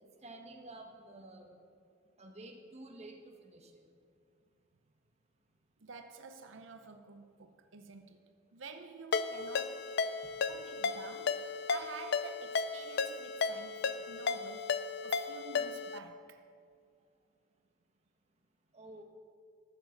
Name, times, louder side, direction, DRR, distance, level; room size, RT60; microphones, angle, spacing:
voice 1, 0.0-1.5 2.2-3.7 18.7-19.0, right 2 dB, 35° right, 1.4 m, -51 dB
voice 2, 5.8-8.2 8.5-9.9 10.5-16.4, right 4 dB, 85° right, 0.7 m, -50 dB
Ringtone, 9.1-16.0, left 5 dB, 60° left, 0.5 m, -34 dB
14.5 x 7.1 x 6.5 m
head